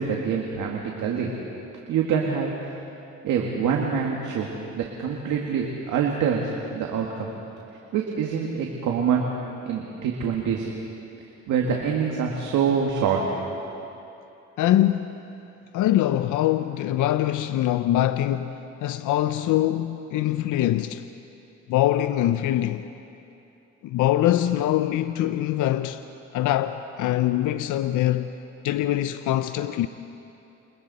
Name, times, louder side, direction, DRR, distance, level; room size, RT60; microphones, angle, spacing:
voice 1, 0.0-1.3 1.9-2.5 3.2-7.3 7.9-9.3 9.6-10.7 11.5-13.2, right 7 dB, 85° right, 2.1 m, -25 dB
voice 2, 14.6-15.2 15.7-21.1 21.7-22.9 23.8-26.0 26.3-28.4 28.6-29.9, left 13 dB, 85° left, 0.7 m, -23 dB
29.0 x 28.5 x 4.2 m
cardioid pair, 90°, 30 cm